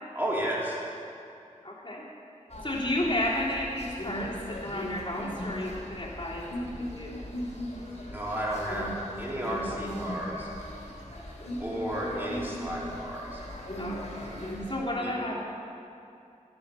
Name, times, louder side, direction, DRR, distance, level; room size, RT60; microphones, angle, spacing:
voice 1, 0.2-0.8 8.1-8.9 9.2-10.5 11.6-13.4 15.0-15.1, right 1 dB, 15° right, -5 dB, 3.5 m, -32 dB
voice 2, 1.6-2.1 2.6-7.2 13.8-14.3 14.7-15.3, left 1 dB, 35° left, -6 dB, 3.4 m, -32 dB
sound 1, 2.5-14.8, equal, 55° left, 3.0 m, -38 dB
12.0 x 11.0 x 7.0 m, 2.5 s
wide cardioid pair, 40°, 13 cm